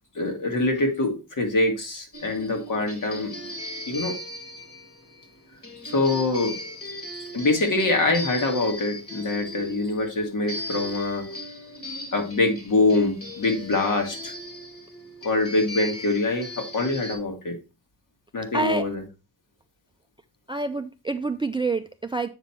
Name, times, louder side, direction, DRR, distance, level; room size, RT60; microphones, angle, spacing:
voice 1, 0.2-3.3 3.9-4.2 5.9-6.5 7.3-11.3 12.1-14.3 15.2-17.6 18.3-19.0, left 2 dB, 50° left, 3 dB, 2.0 m, -24 dB
sound 1, 2.1-17.1, left 1 dB, 35° left, 2.1 m, -38 dB
voice 2, 18.5-18.9 20.5-22.3, right 3 dB, 15° right, 10 dB, 0.3 m, -27 dB
8.0 x 5.2 x 4.3 m, 0.30 s
wide cardioid pair, 145°, 39 cm